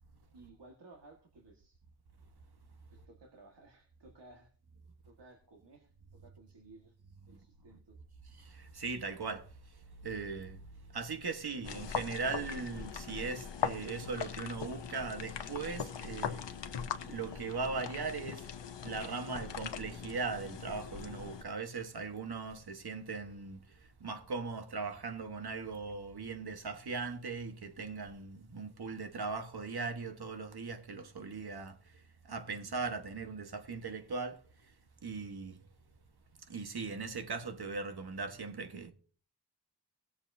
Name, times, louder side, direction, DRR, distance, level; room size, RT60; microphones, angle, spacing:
voice 1, 0.3-1.8 2.9-4.5 5.0-7.0 7.3-8.0, right 2 dB, 80° right, 1.7 m, -58 dB
voice 2, 8.4-9.5 10.0-10.6 10.9-16.5 17.1-18.4 18.8-23.6 24.0-31.8 32.3-34.4 35.0-35.6 36.5-38.9, right 4 dB, 65° right, 1.3 m, -39 dB
sound 1, 11.6-21.4, left 7 dB, 90° left, 0.8 m, -40 dB
18.5 x 7.2 x 2.7 m
wide cardioid pair, 70°, 41 cm